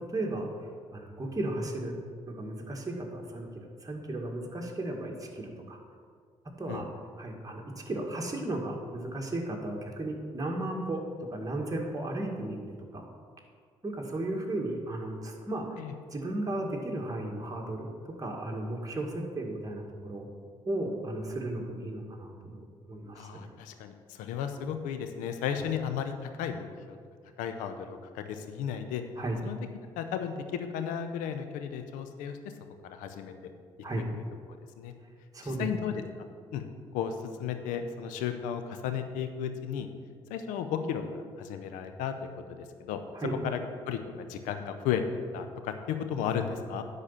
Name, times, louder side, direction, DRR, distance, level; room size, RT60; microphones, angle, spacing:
voice 1, 0.1-2.0 2.3-3.5 3.8-5.8 6.6-6.9 7.2-11.0 11.3-12.6 12.9-13.1 13.8-15.8 16.1-20.3 20.7-23.4 29.2-29.4 33.8-34.0 35.3-35.7 43.1-43.3, right 1 dB, 25° right, 0 dB, 1.9 m, -35 dB
voice 2, 23.1-27.0 27.4-29.0 29.4-29.6 30.0-32.4 32.8-33.3 34.8-34.9 35.4-36.0 36.5-36.6 36.9-39.9 40.3-41.0 41.4-43.0 43.4-43.6 43.9-45.0 45.3-46.8, left 8 dB, 80° left, 8 dB, 0.7 m, -34 dB
10.0 x 4.1 x 7.3 m, 2.1 s
hypercardioid pair, 50°, 13 cm